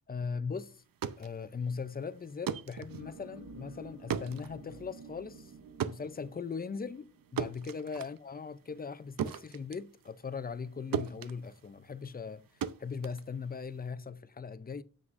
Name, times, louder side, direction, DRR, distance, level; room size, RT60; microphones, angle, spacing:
voice 1, 0.1-0.8 1.2-5.5 5.9-12.5 12.8-14.8, left 5 dB, 30° left, 0.5 m, -39 dB
sound 1, 0.8-10.7 10.9-13.9, right 8 dB, 90° right, 0.7 m, -39 dB
sound 2, 2.9-8.2, right 2 dB, 55° right, 1.1 m, -51 dB
9.6 x 7.6 x 2.5 m
wide cardioid pair, 160°, 33 cm